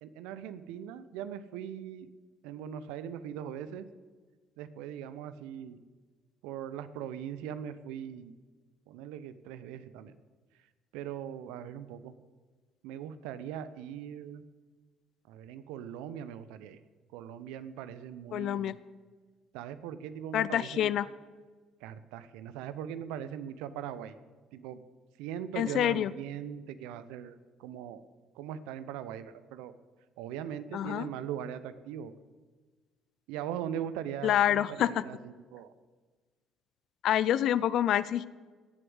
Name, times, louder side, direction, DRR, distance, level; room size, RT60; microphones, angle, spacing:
voice 1, 0.0-2.1 2.4-3.9 4.6-5.8 6.4-8.3 8.9-10.1 10.9-12.1 12.8-14.4 15.3-16.8 17.1-18.8 19.5-20.9 21.8-24.2 24.5-24.8 25.2-28.0 28.3-29.7 30.2-32.1 33.3-35.7, right 9 dB, 75° right, 13 dB, 0.8 m, -40 dB
voice 2, 18.3-18.8 20.3-21.1 25.6-26.1 30.7-31.1 34.2-35.0 37.0-38.3, left 11 dB, 60° left, 18 dB, 0.5 m, -27 dB
16.5 x 7.8 x 7.9 m, 1.4 s
hypercardioid pair, 55°, 0 cm